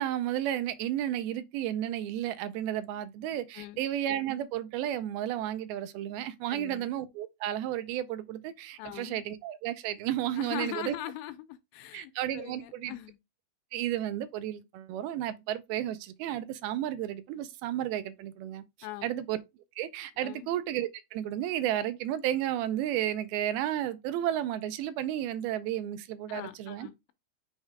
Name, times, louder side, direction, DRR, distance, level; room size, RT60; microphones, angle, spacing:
voice 1, 0.0-11.0 11.9-12.9 13.7-18.6 19.0-19.4 19.8-26.9, right 12 dB, 85° right, 2.5 m, -32 dB
voice 2, 3.6-3.9 6.5-6.8 8.8-9.2 10.4-13.2 18.8-19.2 20.2-20.5 26.3-27.1, left 14 dB, 85° left, 2.6 m, -41 dB
6.4 x 3.5 x 4.8 m
omnidirectional pair, 4.4 m